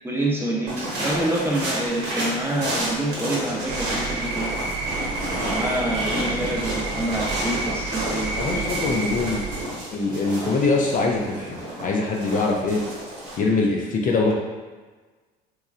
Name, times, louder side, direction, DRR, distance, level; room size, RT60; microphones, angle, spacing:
voice 1, 0.0-4.5 5.4-8.3, right 1 dB, 10° right, -4 dB, 0.7 m, -27 dB
sound 1, 0.7-13.3, right 1 dB, 80° right, 1.0 m, -30 dB
sound 2, 3.7-9.6, right 3 dB, 55° right, 0.5 m, -30 dB
voice 2, 8.4-9.4 9.9-12.8 13.4-14.3, left 3 dB, 40° left, -1 dB, 0.5 m, -23 dB
3.0 x 2.2 x 2.4 m, 1.3 s
hypercardioid pair, 70°, 21 cm